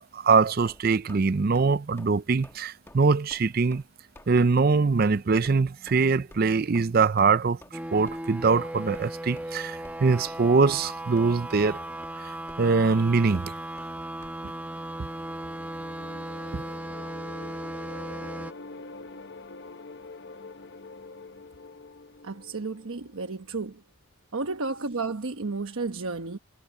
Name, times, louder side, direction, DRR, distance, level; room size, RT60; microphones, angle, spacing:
voice 1, 0.0-3.8 4.3-7.6 7.9-11.8 12.2-13.5 14.4-14.5 15.0-15.1 16.5-16.6, right 4 dB, 45° right, 0.5 m, -23 dB
sound 1, 0.6-1.2 1.5-1.7 2.0-2.2 2.4-2.6 2.9-3.0 3.3-3.4 3.7-3.9 4.2-4.3 4.6-4.7 5.0-5.2 5.4-5.6 5.9-6.0 6.3-6.4 6.7-6.9 7.2-7.3 7.6-7.7 8.1-8.2 8.5-8.7 8.9-9.1 9.4-9.5 9.8-10.0 10.3-10.4 10.7-11.3 11.6-11.8 12.0-12.1 12.5-12.6 12.9-13.0 13.3-13.5 13.8-13.9 14.2-14.3, left 1 dB, 10° left, 1.3 m, -50 dB
sound 2, 7.7-18.5, right 1 dB, 10° right, 1.4 m, -37 dB
sound 3, 14.6-23.5, left 3 dB, 55° left, 0.7 m, -45 dB
voice 2, 22.2-23.8 24.3-26.4, right 3 dB, 85° right, 1.1 m, -32 dB
head